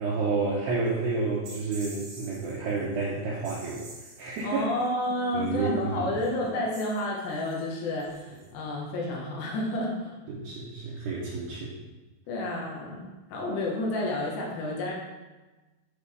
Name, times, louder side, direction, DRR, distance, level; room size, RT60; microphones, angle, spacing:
voice 1, 0.0-3.9 4.2-4.7 5.3-6.2 10.3-11.7, right 3 dB, 80° right, -4 dB, 2.4 m, -30 dB
sound 1, 0.9-1.0 1.4-3.1 3.4-5.6 6.2-6.4 6.7-8.5, right 2 dB, 60° right, 1.8 m, -48 dB
voice 2, 4.4-10.1 12.3-14.9, left 1 dB, 70° left, -3 dB, 2.3 m, -30 dB
8.3 x 4.8 x 3.5 m, 1.2 s
omnidirectional pair, 5.8 m